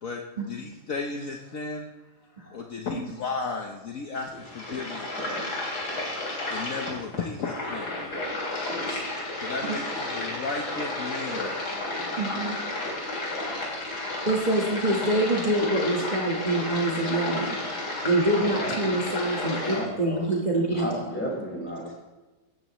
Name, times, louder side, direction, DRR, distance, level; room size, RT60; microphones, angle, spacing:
voice 1, 0.0-1.9 2.5-5.1 6.5-7.9 9.4-11.8, left 4 dB, 55° left, 1 dB, 1.3 m, -34 dB
sound 1, 4.2-19.8, left 2 dB, 85° left, 4.3 m, -32 dB
voice 2, 12.2-12.6 14.2-17.6 18.0-20.8, right 1 dB, 25° right, -3 dB, 1.6 m, -26 dB
voice 3, 18.4-20.2 20.7-21.9, equal, 5° left, -4 dB, 5.4 m, -34 dB
17.0 x 14.0 x 3.1 m, 1.2 s
omnidirectional pair, 1.8 m